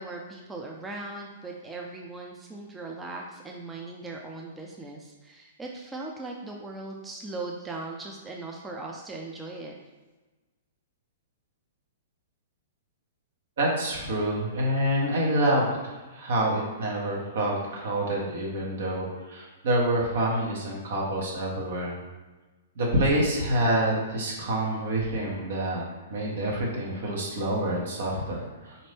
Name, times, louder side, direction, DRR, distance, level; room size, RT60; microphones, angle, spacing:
voice 1, 0.0-9.7, right 2 dB, 10° right, -1 dB, 0.4 m, -39 dB
voice 2, 13.6-22.0 22.8-25.8 26.1-28.8, right 1 dB, 65° right, -2 dB, 1.2 m, -27 dB
4.2 x 2.6 x 3.4 m, 1.2 s
hypercardioid pair, 115°, 0 cm